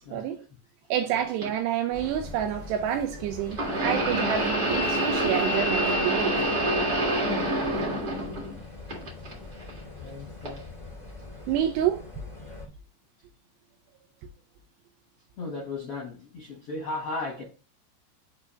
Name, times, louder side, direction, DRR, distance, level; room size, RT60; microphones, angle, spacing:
voice 1, 0.9-6.4 11.5-12.3, right 10 dB, 80° right, 2.4 m, -28 dB
sound 1, 1.4-1.5 3.5-8.6 8.9-9.7 10.4-10.6 11.6-11.7, right 1 dB, 65° right, 0.9 m, -26 dB
sound 2, 1.9-12.7, left 3 dB, 30° left, 0.6 m, -43 dB
voice 2, 9.8-10.7 15.4-17.4, left 2 dB, 80° left, 1.3 m, -36 dB
7.0 x 2.9 x 5.6 m
omnidirectional pair, 5.2 m